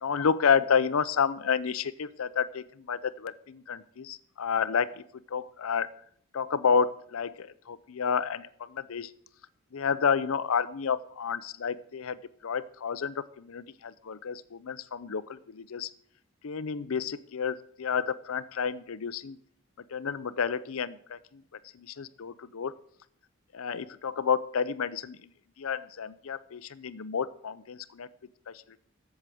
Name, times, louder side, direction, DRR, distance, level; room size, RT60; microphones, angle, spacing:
voice 1, 0.0-5.9 6.3-9.1 9.7-15.9 16.4-19.4 19.9-21.4 21.7-22.7 23.5-25.3 25.6-28.1 28.5-28.8, left 6 dB, 75° left, 15 dB, 0.5 m, -30 dB
8.0 x 7.3 x 7.6 m, 0.63 s
head